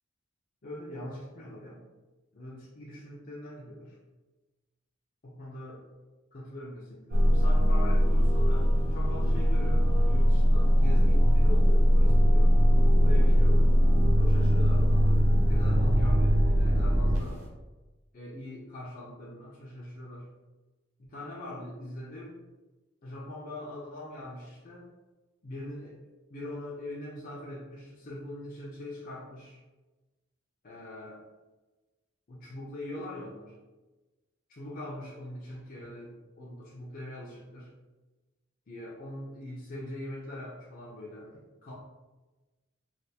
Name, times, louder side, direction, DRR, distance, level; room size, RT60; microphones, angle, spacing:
voice 1, 0.6-1.8 2.3-4.0 5.2-5.8 6.3-12.6 13.0-13.7 14.2-17.4 18.1-20.3 21.0-22.4 23.0-24.9 25.4-26.0 26.3-29.6 30.6-31.2 32.3-33.5 34.5-37.7 38.7-41.7, left 1 dB, 40° left, -5 dB, 0.5 m, -42 dB
sound 1, 7.1-17.5, equal, 75° right, 0.6 m, -21 dB
3.3 x 2.3 x 2.8 m, 1.2 s
head